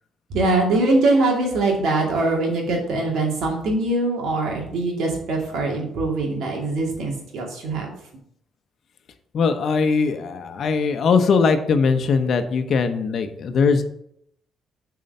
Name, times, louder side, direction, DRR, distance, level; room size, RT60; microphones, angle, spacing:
voice 1, 0.3-7.9, right 2 dB, 80° right, 0 dB, 2.4 m, -22 dB
voice 2, 9.3-13.8, left 5 dB, 60° left, 8 dB, 0.9 m, -20 dB
7.6 x 4.8 x 5.5 m, 0.72 s
cardioid pair, 90°, 0 cm